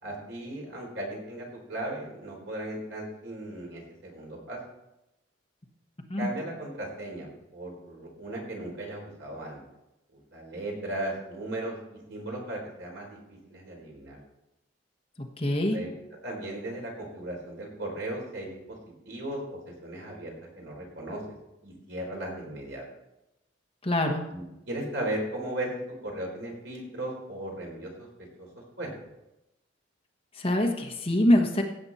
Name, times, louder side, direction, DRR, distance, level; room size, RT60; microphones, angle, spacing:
voice 1, 0.0-4.6 6.2-9.6 10.3-13.2 13.5-14.2 15.7-15.9 16.2-18.8 19.0-21.2 21.6-22.8 24.3-25.7 26.0-28.1 28.4-28.5 28.8-28.9, right 1 dB, 65° right, -1 dB, 4.3 m, -36 dB
voice 2, 15.4-15.8 23.8-24.2 30.4-31.6, left 1 dB, 30° left, 3 dB, 1.2 m, -24 dB
15.5 x 7.9 x 4.2 m, 0.90 s
head